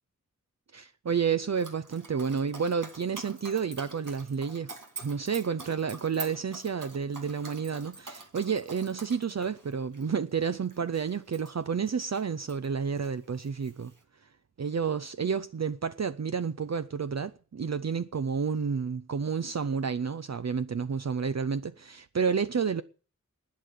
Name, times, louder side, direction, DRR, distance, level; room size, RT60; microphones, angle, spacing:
voice 1, 0.7-4.7 5.0-13.9 14.6-22.8, right 6 dB, 60° right, 0.6 m, -30 dB
Dog, 1.5-12.7 13.0-14.0, right 3 dB, 85° right, 2.2 m, -46 dB
11.5 x 9.4 x 8.3 m
wide cardioid pair, 55°, 30 cm